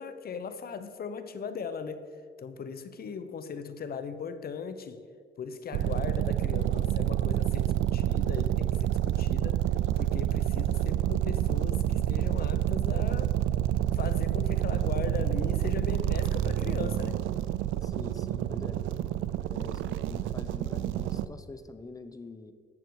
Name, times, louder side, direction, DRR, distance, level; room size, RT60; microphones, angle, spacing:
voice 1, 0.0-2.1 2.4-5.0 5.4-9.7 10.0-13.4 13.9-17.2, left 6 dB, 50° left, 11 dB, 0.8 m, -38 dB
sound 1, 5.7-21.3, right 12 dB, 80° right, 0.4 m, -28 dB
voice 2, 17.8-18.8 19.5-22.5, left 3 dB, 20° left, 11 dB, 0.7 m, -45 dB
12.0 x 7.7 x 4.7 m, 2.1 s
cardioid pair, 90°, 20 cm